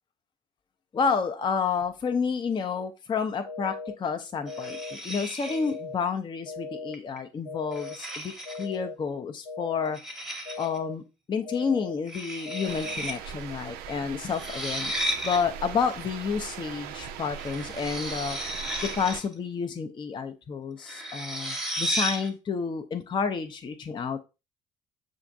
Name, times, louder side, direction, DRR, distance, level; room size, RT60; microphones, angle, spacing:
voice 1, 0.9-8.3 8.6-10.0 10.6-11.0 11.3-18.4 18.8-24.2, left 5 dB, 25° left, 7 dB, 0.5 m, -30 dB
sound 1, 3.5-4.0 4.5-5.0 5.5-6.0 6.5-7.0 7.5-8.0 8.5-9.0 9.5-10.0 10.5-11.0 11.5-12.0 12.5-13.0, left 4 dB, 80° left, 0.5 m, -38 dB
sound 2, 4.5-5.7 6.9-7.2 7.7-8.8 9.9-10.8 12.1-13.2 13.4-13.5 14.3-15.4 17.3-19.3 20.8-22.3, right 1 dB, 5° right, 0.9 m, -34 dB
sound 3, 12.6-19.2, right 9 dB, 60° right, 0.4 m, -40 dB
5.9 x 2.5 x 2.5 m, 0.28 s
figure-of-eight pair, 50°, 18 cm